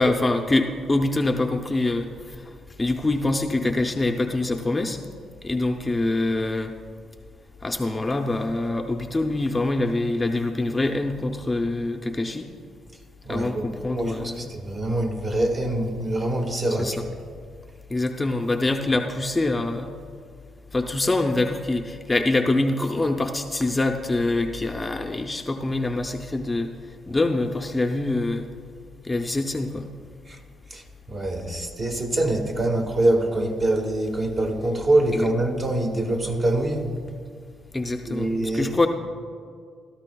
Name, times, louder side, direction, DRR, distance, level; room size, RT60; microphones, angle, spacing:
voice 1, 0.0-2.5 2.8-5.0 5.4-6.7 7.6-12.5 13.3-14.5 16.8-17.1 17.9-19.9 20.7-26.7 27.1-28.5 29.0-29.9 35.1-35.3 37.7-38.9, left 2 dB, 20° left, 4 dB, 0.6 m, -25 dB
voice 2, 13.2-17.0 30.3-30.4 30.7-30.8 31.1-36.9 38.1-38.8, right 1 dB, 35° right, 2 dB, 1.6 m, -24 dB
16.5 x 13.0 x 2.3 m, 2.2 s
cardioid pair, 90°, 0 cm